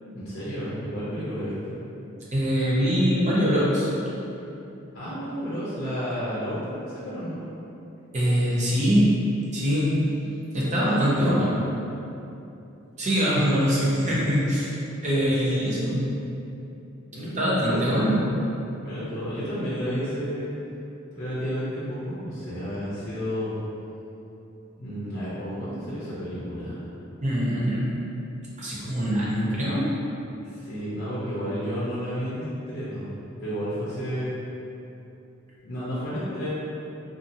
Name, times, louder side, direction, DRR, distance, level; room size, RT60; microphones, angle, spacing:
voice 1, 0.1-1.7 4.9-7.4 10.8-11.8 15.2-15.8 17.1-18.0 18.8-20.5 21.1-23.5 24.8-26.8 30.4-33.1 33.4-34.4 35.6-36.5, equal, 55° left, -10 dB, 0.6 m, -31 dB
voice 2, 2.3-3.9 8.1-9.1 9.5-10.0 10.5-11.5 13.0-14.7 15.0-16.0 17.4-18.2 27.2-27.9 28.6-29.9, equal, 35° right, -7 dB, 0.6 m, -23 dB
2.7 x 2.4 x 2.6 m, 2.9 s
head